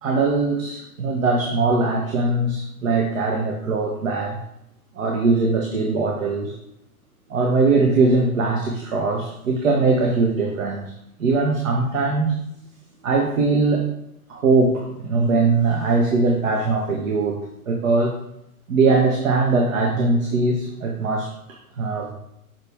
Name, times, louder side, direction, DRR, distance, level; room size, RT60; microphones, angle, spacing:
voice 1, 0.0-4.4 5.0-6.6 7.3-10.8 11.2-12.4 13.0-13.9 14.3-18.1 18.7-22.1, right 3 dB, 60° right, 1 dB, 1.3 m, -21 dB
6.7 x 5.8 x 3.5 m, 0.80 s
figure-of-eight pair, 115°, 44 cm